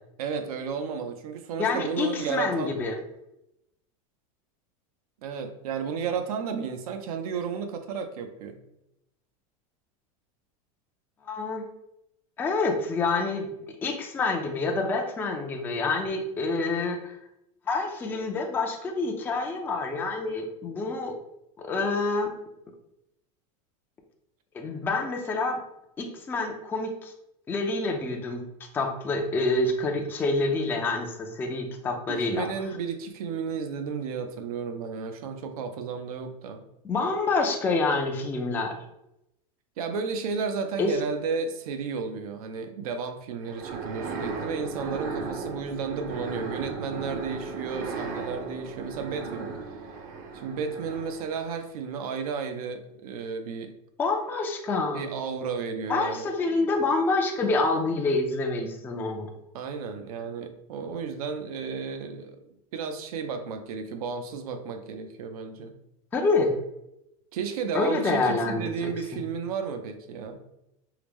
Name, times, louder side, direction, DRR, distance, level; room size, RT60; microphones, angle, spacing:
voice 1, 0.2-2.8 5.2-8.6 32.1-36.6 39.8-49.5 50.4-53.7 54.9-56.3 59.5-62.4 62.7-65.7 67.3-70.4, right 5 dB, 90° right, 7 dB, 0.6 m, -33 dB
voice 2, 1.6-3.0 11.2-11.6 12.4-13.5 13.8-17.2 17.7-21.1 21.6-22.3 24.5-25.6 26.0-27.1 27.5-28.4 28.7-32.5 36.8-38.8 40.8-40.9 54.0-55.1 55.9-59.3 66.1-66.5 67.7-69.2, left 3 dB, 10° left, 2 dB, 0.4 m, -27 dB
sound 1, 43.4-51.5, right 4 dB, 40° right, 0.6 m, -36 dB
4.6 x 2.0 x 3.4 m, 0.84 s
supercardioid pair, 155°, 18 cm